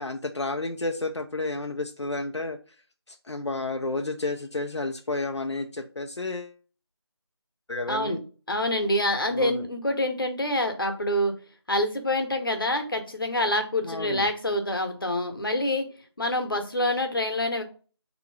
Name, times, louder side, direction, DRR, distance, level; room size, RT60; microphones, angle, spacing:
voice 1, 0.0-2.6 3.1-6.6 7.7-8.2 9.3-9.7 13.8-14.3, left 2 dB, 80° left, 4 dB, 0.5 m, -31 dB
voice 2, 7.9-8.2 8.5-11.3 11.7-15.9 16.2-17.6, left 1 dB, 55° left, 5 dB, 1.0 m, -26 dB
3.7 x 2.9 x 4.5 m, 0.37 s
figure-of-eight pair, 170°, 14 cm